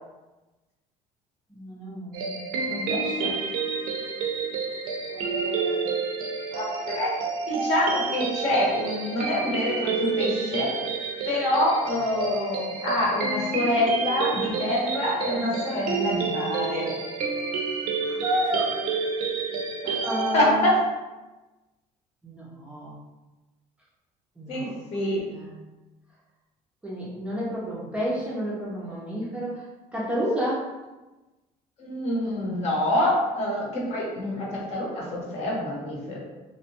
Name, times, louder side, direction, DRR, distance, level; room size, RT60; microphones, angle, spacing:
voice 1, 1.5-3.4 12.9-13.1 18.1-18.9 20.0-20.6 22.2-22.9 24.4-24.8 25.3-25.5 26.8-29.6 29.9-30.7, equal, 10° right, -7 dB, 0.4 m, -30 dB
sound 1, 2.1-20.4, right 5 dB, 70° right, 0.5 m, -29 dB
voice 2, 5.1-6.0 6.5-7.1 7.5-10.7 11.2-16.9 19.8-20.0 20.3-20.7 24.5-25.2 31.8-36.2, left 1 dB, 50° left, -4 dB, 0.8 m, -26 dB
2.7 x 2.1 x 2.8 m, 1.1 s
cardioid pair, 165°, 15 cm